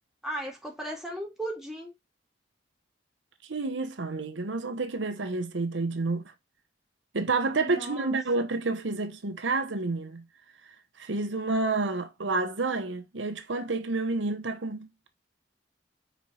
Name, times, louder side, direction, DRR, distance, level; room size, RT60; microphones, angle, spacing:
voice 1, 0.2-1.9 7.6-8.2, right 1 dB, 5° right, 2.1 m, -36 dB
voice 2, 3.5-6.2 7.1-10.2 10.6-14.9, right 3 dB, 80° right, 0.9 m, -29 dB
5.1 x 4.6 x 4.2 m
head